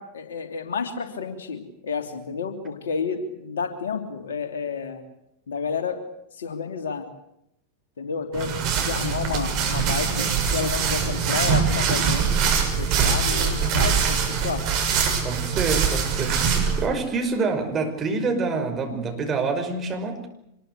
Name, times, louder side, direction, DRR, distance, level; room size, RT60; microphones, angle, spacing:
voice 1, 0.0-5.0 5.5-6.0 6.3-7.0 8.0-12.4 12.8-14.8, left 5 dB, 65° left, 6 dB, 3.1 m, -30 dB
sound 1, 8.3-16.9, right 6 dB, 40° right, 6.4 m, -23 dB
voice 2, 15.2-20.3, right 4 dB, 25° right, 4 dB, 5.6 m, -27 dB
26.0 x 21.5 x 8.2 m, 0.82 s
figure-of-eight pair, 90°, 0 cm